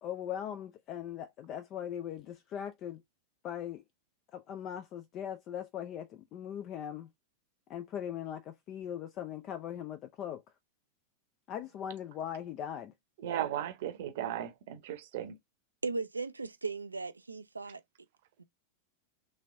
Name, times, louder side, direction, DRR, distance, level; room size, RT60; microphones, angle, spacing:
voice 1, 0.0-3.0 3.4-3.8 4.3-7.1 7.7-10.4 11.5-12.9, left 9 dB, 35° left, 0.4 m, -40 dB
voice 2, 13.2-15.3, right 11 dB, 55° right, 0.8 m, -36 dB
voice 3, 15.8-17.8 18.4-18.5, right 3 dB, 80° right, 0.3 m, -37 dB
3.4 x 3.1 x 2.5 m
figure-of-eight pair, 90°, 0 cm